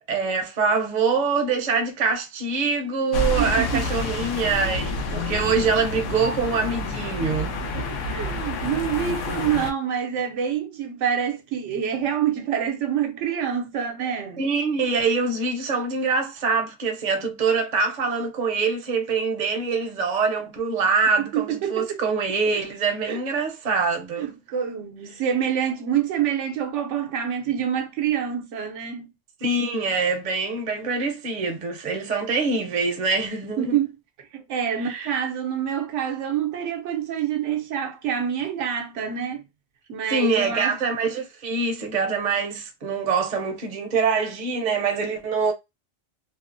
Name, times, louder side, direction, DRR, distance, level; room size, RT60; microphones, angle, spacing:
voice 1, 0.1-7.5 14.4-24.3 29.4-33.8 34.8-35.1 40.1-45.5, right 4 dB, 45° right, 0.7 m, -24 dB
sound 1, 3.1-9.7, left 2 dB, 85° left, 0.9 m, -28 dB
voice 2, 3.4-3.8 7.2-14.4 21.3-22.0 23.0-23.2 24.2-29.1 33.6-33.9 34.2-39.4 39.9-40.8, right 8 dB, 80° right, 0.9 m, -27 dB
2.8 x 2.0 x 2.4 m
omnidirectional pair, 1.2 m